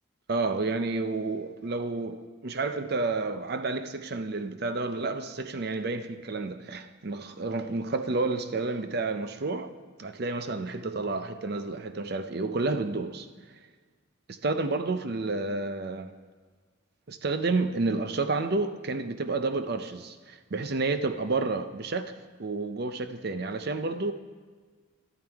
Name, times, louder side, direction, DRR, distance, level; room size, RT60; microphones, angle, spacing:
voice 1, 0.3-2.2 2.4-9.7 10.0-13.3 14.3-16.1 17.1-22.1 22.4-24.1, right 3 dB, 50° right, 0.6 m, -30 dB
12.5 x 12.0 x 3.5 m
head